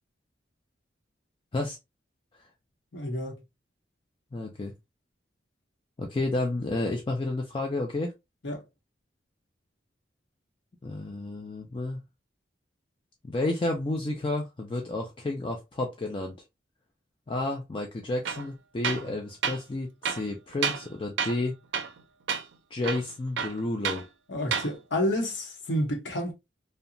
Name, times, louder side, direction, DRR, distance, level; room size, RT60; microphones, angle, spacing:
voice 1, 2.9-3.4 8.4-8.6 24.3-26.3, left 1 dB, 75° left, 0.9 m, -29 dB
voice 2, 4.3-4.7 6.0-8.1 10.8-12.0 13.3-16.3 17.3-21.6 22.7-24.0, left 2 dB, 25° left, 0.4 m, -31 dB
Tools, 18.3-18.5 18.8-19.1 19.4-19.6 20.0-20.9 21.2-21.5 21.7-22.0 22.3-22.4 22.8-24.1 24.4-24.7, right 7 dB, 80° right, 0.4 m, -30 dB
2.8 x 2.1 x 2.5 m
head